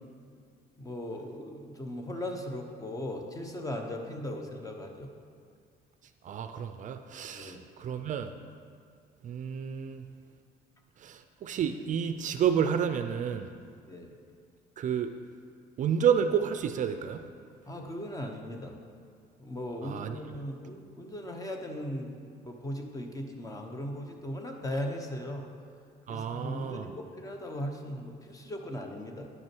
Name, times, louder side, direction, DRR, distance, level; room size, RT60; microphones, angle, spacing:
voice 1, 0.8-5.1 7.3-7.6 13.9-14.1 17.7-18.7 19.4-25.4 26.1-29.3, left 1 dB, 20° left, 3 dB, 0.9 m, -38 dB
voice 2, 6.2-8.3 9.2-10.0 11.0-13.5 14.8-15.1 15.8-17.2 19.8-20.2 26.1-26.9, right 8 dB, 50° right, 8 dB, 0.4 m, -30 dB
9.5 x 6.2 x 4.5 m, 2.3 s
cardioid pair, 110°, 17 cm